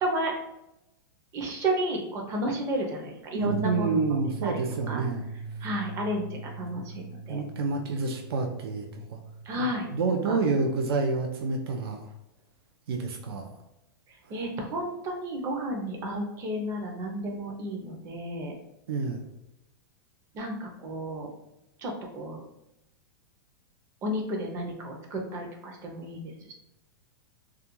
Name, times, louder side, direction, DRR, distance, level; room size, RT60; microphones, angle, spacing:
voice 1, 0.0-0.3 1.3-4.5 4.9-5.0 5.6-7.4 9.5-9.9 10.2-10.4 14.3-18.5 20.3-21.3 21.8-22.4 24.0-26.5, right 1 dB, 25° right, 1 dB, 0.5 m, -32 dB
voice 2, 3.3-5.3 7.3-9.2 9.5-12.1 12.9-13.5 18.9-19.2, right 4 dB, 85° right, 2 dB, 0.5 m, -28 dB
sound 1, 3.4-10.0, right 4 dB, 60° right, 1.1 m, -40 dB
2.3 x 2.2 x 2.9 m, 0.87 s
supercardioid pair, 155°, 12 cm